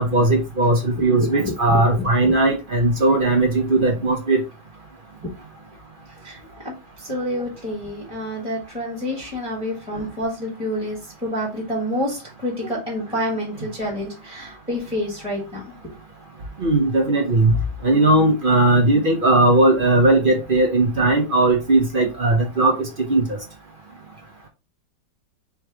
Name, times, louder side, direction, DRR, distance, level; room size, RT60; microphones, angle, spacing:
voice 1, 0.0-4.4 16.6-17.5 17.8-23.2, right 2 dB, 45° right, 2 dB, 0.7 m, -18 dB
voice 2, 1.2-2.3 6.2-6.4 6.6-15.6, equal, 5° right, -3 dB, 1.5 m, -28 dB
3.5 x 3.1 x 4.6 m, 0.29 s
omnidirectional pair, 1.9 m